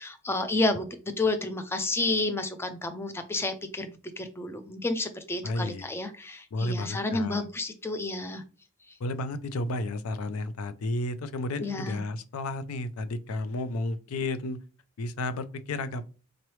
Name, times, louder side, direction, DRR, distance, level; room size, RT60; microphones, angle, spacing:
voice 1, 0.0-8.4 8.9-9.0 11.6-12.0, left 2 dB, 10° left, 0.4 m, -30 dB
voice 2, 5.4-5.9 6.5-7.4 9.0-14.6 15.0-16.1, left 2 dB, 85° left, 0.4 m, -32 dB
3.8 x 3.1 x 3.1 m
head